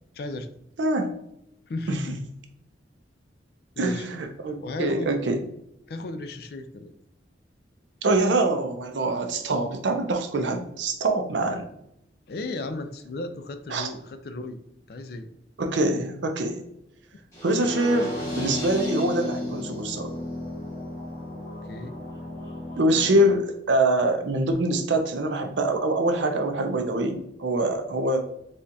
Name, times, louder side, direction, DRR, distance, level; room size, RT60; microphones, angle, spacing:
voice 1, 0.1-0.5 1.7-2.2 3.8-4.1 4.6-5.1 5.9-6.9 12.3-14.6 14.9-15.3 17.6-17.7 21.6-21.9, left 2 dB, 55° left, 8 dB, 0.4 m, -35 dB
voice 2, 3.8-5.4 8.0-11.7 13.7-13.9 15.6-16.6 17.4-20.1 22.8-28.2, right 1 dB, 80° right, 5 dB, 0.6 m, -24 dB
sound 1, 17.3-23.3, left 1 dB, 15° left, 1.2 m, -34 dB
4.2 x 2.3 x 2.6 m, 0.77 s
head